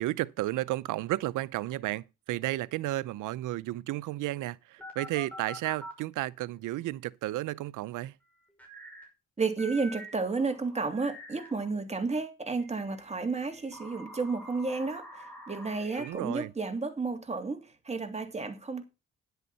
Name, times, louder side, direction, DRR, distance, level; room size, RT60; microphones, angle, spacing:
voice 1, 0.0-8.2 16.0-16.5, right 16 dB, 85° right, 0.6 m, -33 dB
sound 1, 4.8-6.0 8.6-9.1 9.6-11.7 12.6-16.1, equal, 5° left, 5.8 m, -46 dB
voice 2, 9.4-18.8, right 4 dB, 20° right, 2.8 m, -32 dB
10.5 x 8.2 x 5.6 m
cardioid pair, 90°, 30 cm